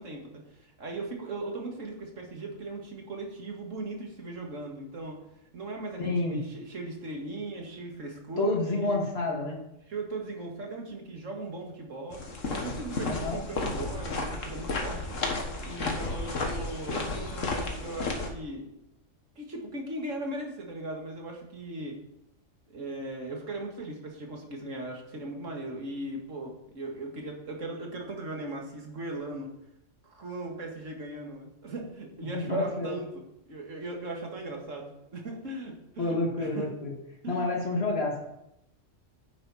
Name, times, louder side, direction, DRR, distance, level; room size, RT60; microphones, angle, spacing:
voice 1, 0.0-5.3 5.5-8.5 8.8-9.2 9.9-12.2 12.5-15.2 15.5-18.7 19.4-22.0 22.7-29.5 30.0-36.7 37.2-37.6, right 2 dB, 70° right, 1 dB, 2.3 m, -38 dB
voice 2, 6.0-6.4 8.4-9.6 13.1-13.4 32.2-33.0 36.0-36.9 37.3-38.3, left 2 dB, 50° left, -1 dB, 2.4 m, -29 dB
sound 1, 12.1-18.3, left 3 dB, 75° left, 1.8 m, -32 dB
11.0 x 8.9 x 4.2 m, 0.84 s
omnidirectional pair, 1.3 m